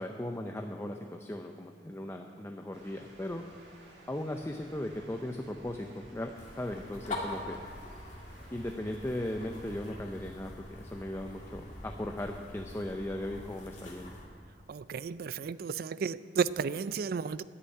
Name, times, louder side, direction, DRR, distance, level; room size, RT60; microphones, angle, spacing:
voice 1, 0.0-3.4 4.1-6.3 6.6-7.6 8.5-14.2, left 1 dB, 15° left, 0.5 m, -37 dB
sound 1, 2.7-9.9, right 1 dB, 75° right, 2.3 m, -56 dB
sound 2, 6.3-14.3, left 1 dB, 45° left, 2.2 m, -44 dB
voice 2, 14.7-17.4, right 5 dB, 60° right, 0.4 m, -33 dB
9.8 x 8.2 x 9.4 m
head